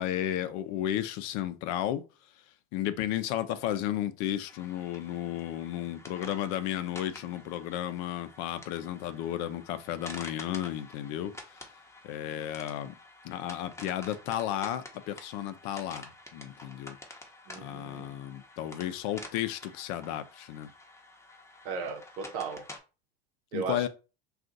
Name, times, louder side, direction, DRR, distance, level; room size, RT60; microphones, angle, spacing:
voice 1, 0.0-2.0 2.7-11.3 12.0-12.9 13.2-16.0 16.3-17.0 17.6-20.7 23.5-23.9, left 12 dB, 60° left, 0.6 m, -33 dB
sound 1, 4.5-22.8, left 2 dB, 10° left, 0.8 m, -49 dB
voice 2, 17.5-18.1 21.6-22.6 23.5-23.9, right 5 dB, 70° right, 0.9 m, -36 dB
2.5 x 2.4 x 3.9 m
hypercardioid pair, 80°, 30 cm